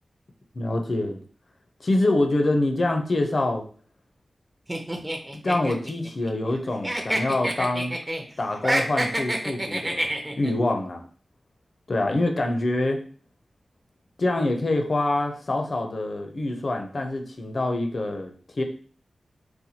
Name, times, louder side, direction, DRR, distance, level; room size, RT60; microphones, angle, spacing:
voice 1, 0.5-1.2 1.8-3.6 5.3-8.0 8.4-10.1 10.3-11.0 11.9-13.0 14.2-18.6, left 2 dB, 50° left, 4 dB, 0.5 m, -25 dB
sound 1, 4.7-6.6 6.8-8.2 8.5-10.5, right 1 dB, 15° right, 0.5 m, -27 dB
4.2 x 2.2 x 2.7 m, 0.42 s
wide cardioid pair, 95°, 0 cm